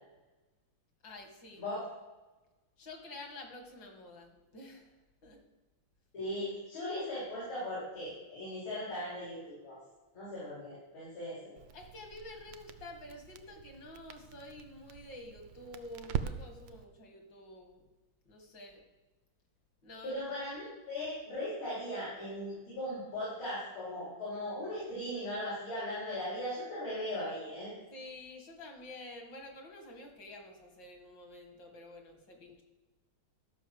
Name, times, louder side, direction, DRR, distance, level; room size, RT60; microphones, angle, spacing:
voice 1, 1.0-1.6 2.8-4.9 5.2-5.4 11.7-17.8 18.3-18.8 19.8-20.3 27.9-32.6, left 2 dB, 60° left, 3 dB, 2.5 m, -49 dB
voice 2, 6.1-9.8 10.1-11.5 20.0-27.7, left 1 dB, 80° left, -9 dB, 5.2 m, -38 dB
Crackle, 11.6-16.8, right 8 dB, 75° right, 1.4 m, -43 dB
13.5 x 5.6 x 6.9 m, 1.1 s
omnidirectional pair, 2.2 m